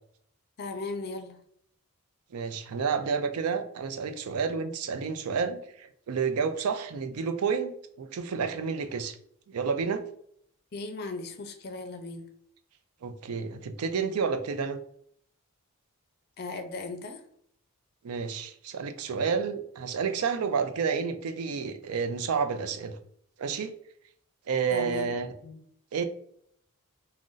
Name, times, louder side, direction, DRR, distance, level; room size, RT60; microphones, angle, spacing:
voice 1, 0.6-1.4 10.7-12.3 16.4-17.2 24.7-25.6, left 3 dB, 45° left, 6 dB, 0.5 m, -37 dB
voice 2, 2.3-7.7 8.0-9.2 9.5-10.0 13.0-14.8 18.0-23.0 23.4-23.7 24.5-25.3 25.9-26.0, right 5 dB, 80° right, 9 dB, 0.4 m, -30 dB
2.5 x 2.1 x 3.8 m, 0.68 s
head